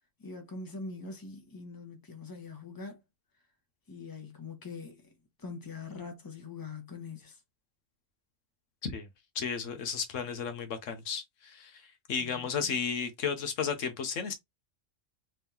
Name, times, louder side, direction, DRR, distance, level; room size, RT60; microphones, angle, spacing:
voice 1, 0.2-3.0 3.9-5.1 5.4-7.4 12.2-12.8, left 4 dB, 20° left, 1.1 m, -43 dB
voice 2, 9.3-11.8 12.1-14.3, left 6 dB, 80° left, 1.2 m, -33 dB
3.5 x 3.5 x 2.8 m
omnidirectional pair, 1.3 m